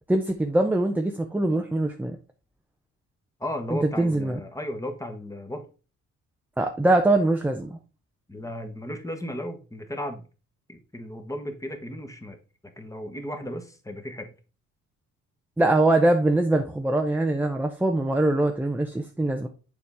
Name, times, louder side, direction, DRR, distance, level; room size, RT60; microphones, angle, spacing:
voice 1, 0.1-2.2 3.7-4.4 6.6-7.8 15.6-19.5, right 2 dB, 5° right, 0.7 m, -23 dB
voice 2, 3.4-5.6 8.3-10.2 10.7-12.4 12.8-14.4, left 1 dB, 10° left, 1.3 m, -35 dB
6.8 x 4.7 x 3.5 m
cardioid pair, 90°, 30 cm